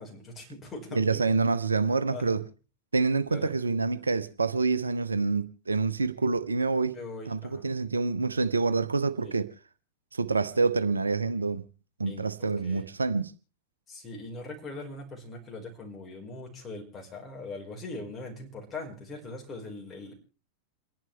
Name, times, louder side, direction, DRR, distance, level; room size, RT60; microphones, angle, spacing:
voice 1, 0.0-1.2 2.1-2.4 3.3-3.5 6.9-7.6 9.2-9.4 12.0-12.9 13.9-20.1, left 2 dB, 25° left, 4.9 m, -41 dB
voice 2, 0.9-2.4 2.9-7.0 7.3-9.5 10.1-11.7 12.0-13.3, right 4 dB, 75° right, 0.8 m, -27 dB
28.5 x 11.0 x 3.4 m
figure-of-eight pair, 90°, 0 cm